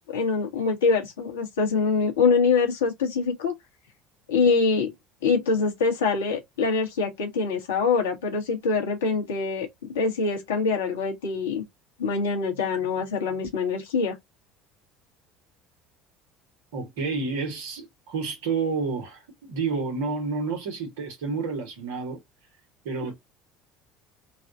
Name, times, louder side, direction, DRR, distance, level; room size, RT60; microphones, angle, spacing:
voice 1, 0.1-3.6 4.3-4.9 5.2-11.6 12.0-14.1, left 4 dB, 80° left, 1.5 m, -24 dB
voice 2, 16.7-22.2 22.8-23.1, right 4 dB, 75° right, 1.5 m, -30 dB
3.9 x 2.5 x 2.7 m
hypercardioid pair, 70°, 0 cm